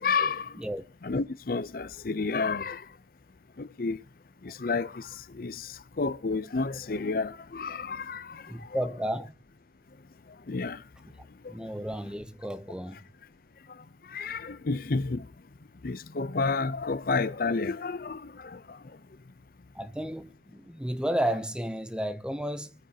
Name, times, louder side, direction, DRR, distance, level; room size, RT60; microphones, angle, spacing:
voice 1, 0.0-0.5 1.0-2.8 3.6-4.0 4.4-5.1 5.4-5.7 6.0-8.4 8.7-8.8 10.5-10.8 14.1-15.2 15.8-18.6, left 4 dB, 55° left, 0.6 m, -30 dB
voice 2, 8.5-9.3 11.5-13.0 19.7-22.7, equal, 5° right, 0.5 m, -32 dB
24.0 x 8.9 x 2.8 m
head